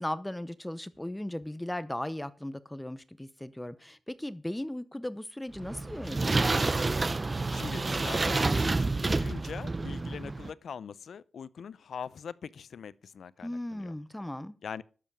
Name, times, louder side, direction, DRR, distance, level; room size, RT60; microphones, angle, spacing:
voice 1, 0.0-6.5 13.4-14.5, left 1 dB, 10° left, 0.7 m, -37 dB
sound 1, 5.6-10.5, right 3 dB, 35° right, 0.6 m, -29 dB
voice 2, 7.5-13.9 14.6-14.8, left 7 dB, 85° left, 0.6 m, -42 dB
12.0 x 7.6 x 6.8 m
cardioid pair, 80°, 0 cm